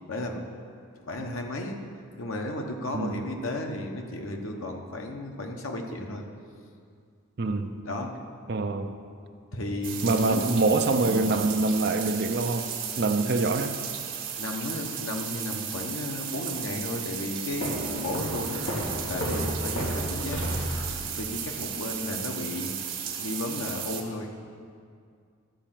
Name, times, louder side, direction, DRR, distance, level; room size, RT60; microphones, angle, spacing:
voice 1, 0.1-0.4 1.1-1.8 2.2-6.2 7.8-8.1 9.5-10.5 14.4-18.6 19.1-20.4 21.0-22.8 23.2-24.3, left 1 dB, 85° left, 2 dB, 1.1 m, -34 dB
voice 2, 2.9-3.2 7.4-7.7 8.5-8.9 10.0-12.7 13.0-13.8, right 3 dB, 55° right, 7 dB, 0.6 m, -25 dB
sound 1, 9.8-24.0, right 7 dB, 75° right, 1.3 m, -35 dB
sound 2, 17.6-21.3, equal, 65° left, 1.8 m, -32 dB
13.0 x 4.4 x 7.5 m, 2.2 s
head